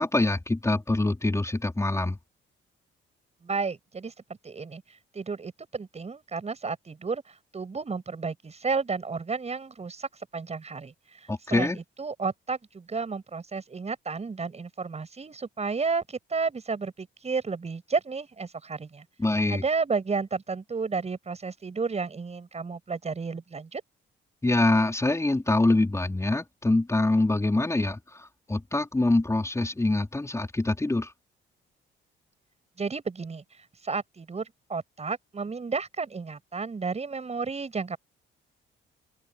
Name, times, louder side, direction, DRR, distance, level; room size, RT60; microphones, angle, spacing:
voice 1, 0.0-2.2 11.3-11.8 19.2-19.6 24.4-31.1, left 2 dB, 15° left, 4.7 m, -25 dB
voice 2, 3.4-4.1 4.4-4.8 5.1-11.7 12.0-19.0 19.5-23.8 32.8-33.4 33.8-38.0, right 4 dB, 35° right, 7.7 m, -32 dB
open air
cardioid pair, 90°, 20 cm